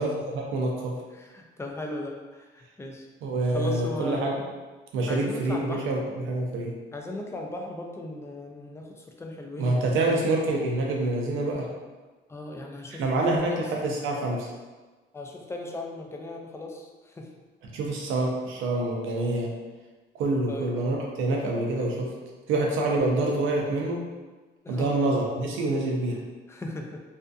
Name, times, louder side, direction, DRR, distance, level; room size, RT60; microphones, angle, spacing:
voice 1, 0.0-0.9 3.2-4.4 4.9-6.7 9.6-11.7 13.0-14.5 17.7-19.5 20.2-22.1 22.5-24.0 24.7-26.2, right 2 dB, 90° right, -1 dB, 0.5 m, -26 dB
voice 2, 1.1-3.1 3.5-4.3 5.1-5.9 6.9-10.3 12.3-13.7 15.1-17.3 20.5-20.8 24.6-25.0 26.5-27.0, left 2 dB, 15° left, 1 dB, 0.3 m, -37 dB
2.6 x 2.4 x 2.2 m, 1.3 s
cardioid pair, 90°, 20 cm